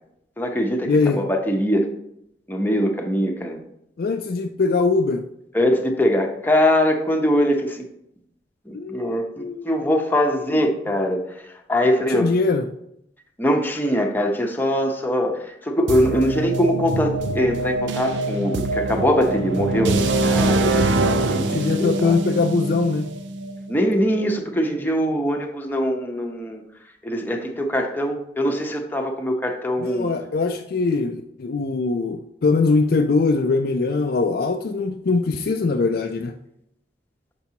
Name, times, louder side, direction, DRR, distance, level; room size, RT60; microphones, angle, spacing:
voice 1, 0.4-1.9 2.5-3.6 5.5-7.9 8.7-12.3 13.4-22.2 23.7-26.6 27.0-30.1, equal, 10° left, 2 dB, 0.8 m, -22 dB
voice 2, 0.9-1.2 4.0-5.2 8.7-9.7 12.1-12.7 21.5-23.1 29.8-36.3, left 3 dB, 55° left, 5 dB, 0.4 m, -22 dB
sound 1, 15.9-23.8, right 2 dB, 90° right, 0.5 m, -23 dB
6.7 x 5.9 x 2.8 m, 0.77 s
head